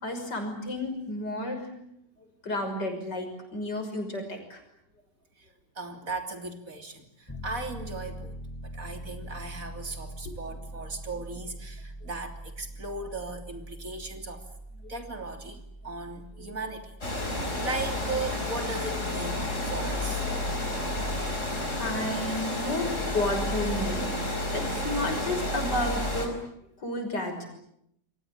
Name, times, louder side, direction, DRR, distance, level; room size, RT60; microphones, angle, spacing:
voice 1, 0.0-1.9 2.4-4.6 10.2-10.3 14.8-14.9 20.4-20.9 21.7-26.3 26.8-27.5, left 1 dB, 80° left, 5 dB, 6.7 m, -32 dB
voice 2, 5.8-8.4 8.6-14.4 14.9-16.9 17.3-20.3, right 3 dB, 50° right, 6 dB, 3.5 m, -37 dB
Piano, 7.3-24.0, right 1 dB, 10° left, 1.9 m, -44 dB
Water, 17.0-26.3, left 1 dB, 45° left, 5.5 m, -31 dB
28.5 x 23.0 x 8.7 m, 0.76 s
omnidirectional pair, 1.8 m